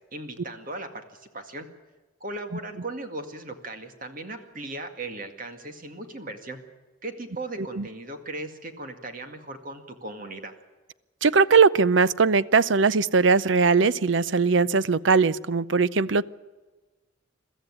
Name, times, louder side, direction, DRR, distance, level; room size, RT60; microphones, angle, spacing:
voice 1, 0.1-1.7 2.2-6.6 7.0-10.5, right 2 dB, 45° right, 6 dB, 2.1 m, -37 dB
voice 2, 11.2-16.2, right 5 dB, 65° right, 18 dB, 0.6 m, -20 dB
22.5 x 14.5 x 9.8 m, 1.3 s
head